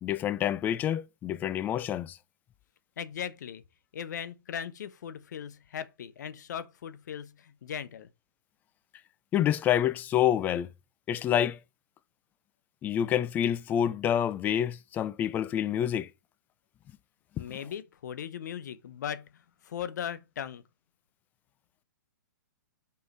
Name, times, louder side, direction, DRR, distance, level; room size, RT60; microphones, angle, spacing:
voice 1, 0.0-2.2 9.3-10.7 11.1-11.6 12.8-16.1, left 10 dB, 15° left, 0.4 m, -27 dB
voice 2, 3.0-3.6 3.9-8.1 17.4-20.6, left 8 dB, 60° left, 0.9 m, -38 dB
5.1 x 4.7 x 5.4 m
hypercardioid pair, 130°, 11 cm